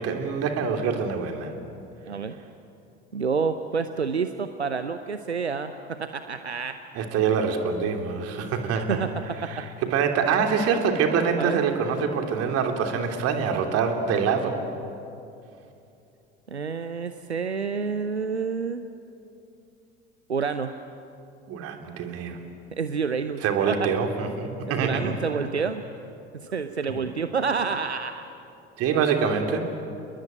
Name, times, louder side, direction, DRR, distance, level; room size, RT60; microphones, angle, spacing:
voice 1, 0.0-1.5 6.9-9.1 9.4-14.5 21.5-22.4 23.4-25.1 26.9-27.0 28.8-29.6, right 6 dB, 50° right, 4 dB, 3.3 m, -25 dB
voice 2, 3.1-6.8 8.9-9.1 9.4-9.6 11.4-11.6 16.5-18.8 20.3-20.7 22.7-23.9 24.8-25.8 26.3-28.2, right 5 dB, 85° right, 10 dB, 0.8 m, -28 dB
30.0 x 21.0 x 9.3 m, 2.7 s
figure-of-eight pair, 65°, 32 cm